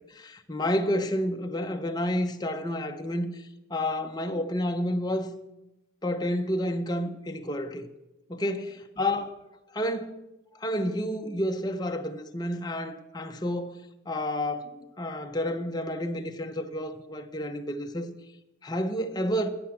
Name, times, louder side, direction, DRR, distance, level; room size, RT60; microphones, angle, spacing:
voice 1, 0.1-3.4 3.7-5.3 6.0-7.9 8.3-8.7 9.0-9.4 9.7-10.2 10.5-13.8 14.1-18.1 18.6-19.5, left 1 dB, 20° left, 0.8 m, -30 dB
11.0 x 8.7 x 7.1 m
head